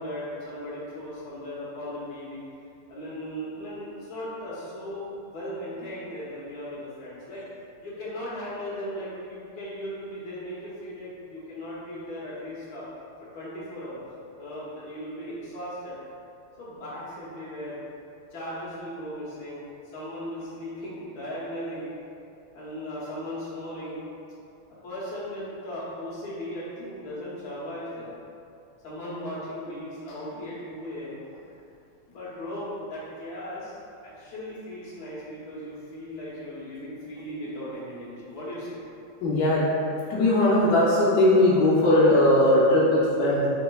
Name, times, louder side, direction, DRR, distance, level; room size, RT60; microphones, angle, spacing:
voice 1, 0.0-2.4 2.9-7.5 7.8-12.8 13.3-14.0 14.4-16.0 16.6-17.8 18.3-19.7 19.9-21.9 22.5-24.0 24.8-28.1 28.8-31.2 32.1-33.8 34.0-38.8, equal, 55° left, -9 dB, 1.4 m, -37 dB
voice 2, 39.2-39.7 40.1-43.5, left 1 dB, 75° left, -7 dB, 0.9 m, -19 dB
4.1 x 3.7 x 2.2 m, 2.6 s
omnidirectional pair, 2.4 m